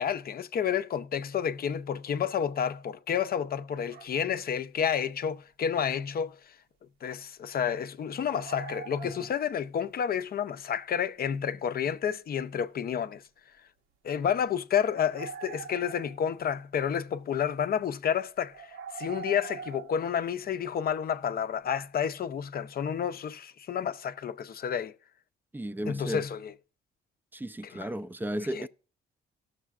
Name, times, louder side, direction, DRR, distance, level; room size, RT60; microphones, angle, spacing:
voice 1, 0.0-6.4 7.0-13.2 14.0-24.9 25.9-26.5 27.7-27.9 28.5-28.7, left 8 dB, 50° left, 0.6 m, -30 dB
sound 1, 3.9-4.3 5.8-5.9 8.3-9.9 13.3-13.4 14.9-16.7 18.5-20.9, right 6 dB, 80° right, 0.9 m, -43 dB
voice 2, 25.5-26.3 27.3-28.7, right 1 dB, 10° right, 0.4 m, -34 dB
18.5 x 6.7 x 2.4 m
cardioid pair, 90°, 20 cm